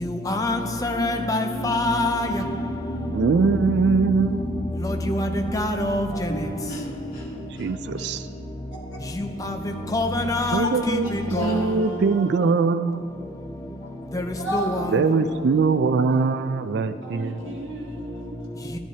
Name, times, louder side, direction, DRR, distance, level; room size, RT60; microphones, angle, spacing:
voice 1, 0.0-2.4 4.8-5.3 5.5-6.1 9.2-9.5 9.9-11.6 14.1-14.2 14.5-14.8, left 1 dB, 20° left, 0.5 m, -25 dB
sound 1, 0.8-5.7 6.7-6.8 7.1-7.2 7.5-7.7 8.0-8.1 11.4-11.9, equal, 50° left, 1.7 m, -35 dB
voice 2, 3.1-4.5 7.6-8.3 10.5-11.1 11.4-13.1 14.9-17.5, right 4 dB, 55° right, 0.3 m, -22 dB
voice 3, 6.1-7.4 10.6-10.7 11.0-11.5 13.8-13.9 14.4-14.8 16.1-16.2, equal, 80° left, 2.3 m, -32 dB
voice 4, 11.6-12.5 15.2-15.6 17.0-18.8, right 1 dB, 80° right, 1.7 m, -39 dB
13.0 x 10.5 x 2.8 m
head